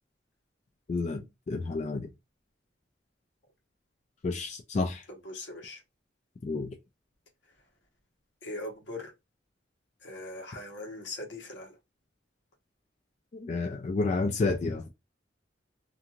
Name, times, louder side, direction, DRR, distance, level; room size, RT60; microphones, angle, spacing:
voice 1, 0.9-2.1 4.2-5.0 6.4-6.7 13.3-14.9, left 3 dB, 40° left, 0.3 m, -30 dB
voice 2, 5.2-5.8 8.4-9.1 10.0-11.8, left 2 dB, 80° left, 1.0 m, -40 dB
2.5 x 2.3 x 2.9 m
head